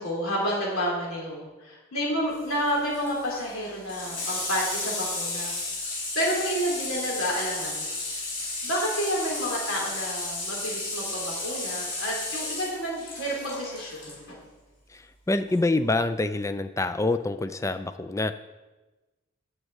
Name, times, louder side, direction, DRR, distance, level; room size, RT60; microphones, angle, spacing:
voice 1, 0.0-5.5 5.8-5.9 6.2-7.9 8.6-14.3, equal, 65° left, -3 dB, 3.6 m, -30 dB
Water tap faucet / Sink (filling or washing), 2.3-14.2 15.5-15.6, left 2 dB, 40° left, 3.5 m, -33 dB
voice 2, 14.9-18.3, left 2 dB, 15° left, 11 dB, 0.3 m, -26 dB
7.7 x 6.4 x 8.1 m, 1.1 s
head